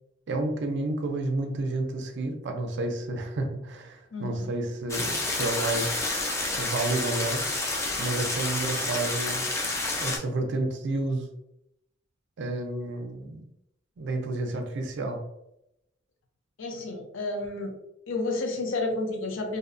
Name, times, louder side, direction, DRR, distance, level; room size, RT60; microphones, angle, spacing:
voice 1, 0.3-6.3 6.6-7.4 8.0-9.4 10.0-11.3 12.4-13.4 14.0-15.2, right 2 dB, 60° right, 4 dB, 0.4 m, -30 dB
voice 2, 4.1-4.5 16.6-17.8 18.1-19.6, left 2 dB, 70° left, 3 dB, 0.5 m, -31 dB
sound 1, 4.9-10.2, left 2 dB, 15° left, 0.4 m, -29 dB
2.7 x 2.0 x 2.5 m, 0.83 s
head